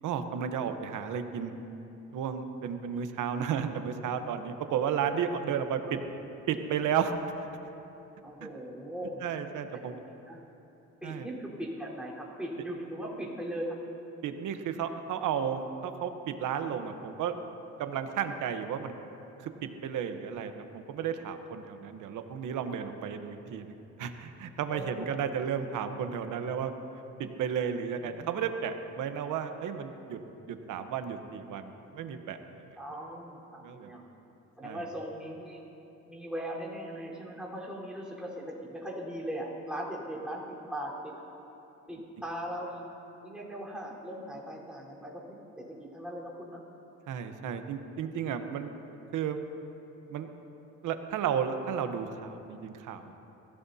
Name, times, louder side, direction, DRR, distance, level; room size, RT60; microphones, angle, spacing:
voice 1, 0.0-1.5 2.1-6.0 6.5-7.1 9.2-9.9 11.0-11.3 14.2-17.4 17.8-18.9 19.4-19.5 19.8-23.7 24.0-26.7 27.2-30.2 30.5-32.8 33.6-33.9 34.6-34.8 47.1-48.7 49.1-49.4 50.1-50.3 50.8-53.1, right 8 dB, 80° right, 7 dB, 1.1 m, -33 dB
voice 2, 8.2-9.2 9.7-10.0 10.3-10.4 11.0-13.8 24.7-25.1 28.0-28.3 32.8-34.0 34.6-35.6 36.1-41.2 41.9-42.9 43.2-45.2 45.6-46.6, equal, 5° right, -5 dB, 4.2 m, -39 dB
22.5 x 16.5 x 2.8 m, 3.0 s
cardioid pair, 90°, 30 cm